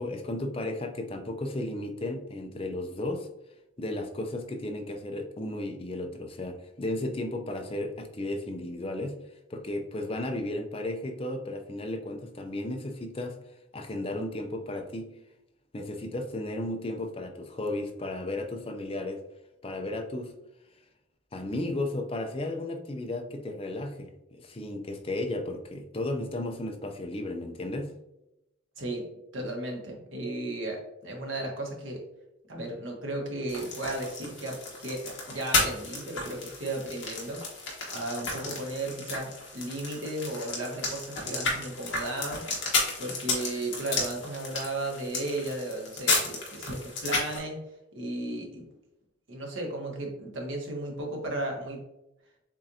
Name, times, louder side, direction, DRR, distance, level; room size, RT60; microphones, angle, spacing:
voice 1, 0.0-3.3 3.8-9.2 9.5-13.4 13.7-15.1 15.7-19.2 19.6-20.3 21.3-28.0, left 1 dB, 25° left, 5 dB, 0.5 m, -34 dB
voice 2, 29.3-32.0 32.5-42.4 43.0-47.6 47.9-48.6 49.3-51.8, right 1 dB, 70° right, 0 dB, 1.2 m, -35 dB
sound 1, 33.5-47.4, left 3 dB, 60° left, 1.2 m, -33 dB
7.2 x 2.6 x 2.7 m, 0.90 s
head